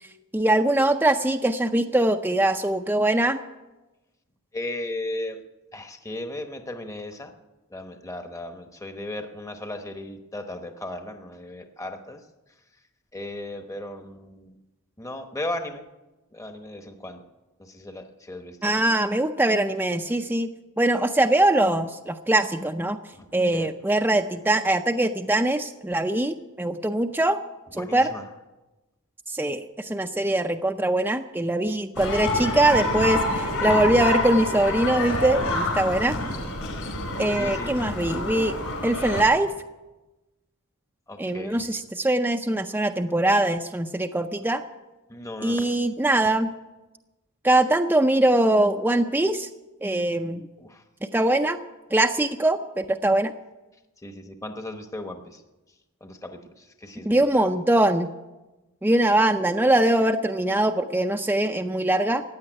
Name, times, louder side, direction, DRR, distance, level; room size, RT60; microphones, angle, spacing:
voice 1, 0.3-3.4 18.6-20.5 20.8-23.0 23.3-27.4 27.7-28.1 29.3-36.2 37.2-38.6 38.8-39.5 41.2-44.6 45.4-46.5 47.4-49.5 49.8-50.5 51.1-51.6 51.9-53.3 57.1-58.1 58.8-62.2, right 1 dB, 10° right, 5 dB, 0.5 m, -22 dB
voice 2, 4.5-5.4 5.7-7.3 7.7-12.2 13.1-14.5 15.0-15.8 16.3-17.2 17.7-18.9 23.2-23.3 23.5-23.7 27.8-28.2 36.0-36.5 37.4-37.8 41.1-41.6 45.1-45.7 50.6-50.8 54.0-55.2 56.0-56.4 56.8-57.4, left 1 dB, 15° left, 6 dB, 0.9 m, -36 dB
sound 1, 32.0-39.2, left 2 dB, 65° left, 4.6 m, -27 dB
15.5 x 9.5 x 9.8 m, 1.1 s
head